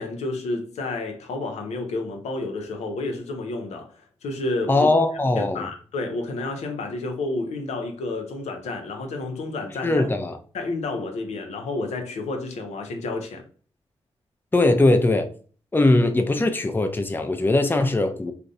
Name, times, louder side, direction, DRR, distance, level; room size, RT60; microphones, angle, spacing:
voice 1, 0.0-4.9 5.4-10.1 10.5-13.4, left 2 dB, 80° left, 0.5 m, -30 dB
voice 2, 4.7-5.7 9.8-10.3 14.5-15.3 15.7-18.3, left 2 dB, 20° left, 0.4 m, -20 dB
2.4 x 2.0 x 2.5 m
supercardioid pair, 40°, 11 cm